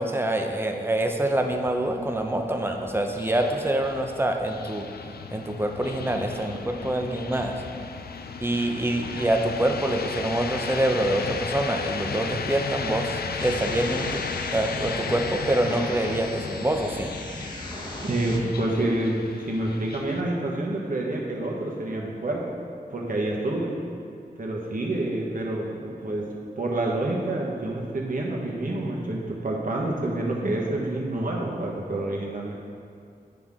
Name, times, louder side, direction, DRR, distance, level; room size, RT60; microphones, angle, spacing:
voice 1, 0.0-4.9 5.3-7.6 8.4-14.2 14.5-17.1, right 1 dB, 15° right, 4 dB, 0.7 m, -26 dB
sound 1, 1.4-20.2, left 5 dB, 70° left, 0.4 m, -35 dB
sound 2, 13.4-18.4, left 1 dB, 30° left, 1.1 m, -37 dB
voice 2, 18.0-22.5 22.9-23.8 24.4-26.3 26.6-32.5, right 1 dB, 55° right, -2 dB, 1.3 m, -28 dB
9.2 x 5.8 x 3.7 m, 2.4 s
wide cardioid pair, 75°, 17 cm